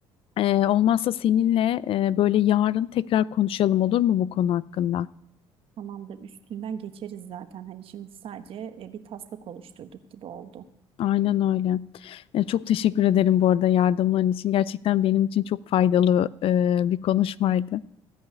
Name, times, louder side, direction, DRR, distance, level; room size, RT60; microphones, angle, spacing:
voice 1, 0.4-5.1 11.0-17.8, left 11 dB, 60° left, 20 dB, 0.4 m, -22 dB
voice 2, 5.8-10.7, right 8 dB, 60° right, 10 dB, 1.2 m, -39 dB
15.5 x 5.5 x 9.2 m, 0.76 s
supercardioid pair, 80°, 11 cm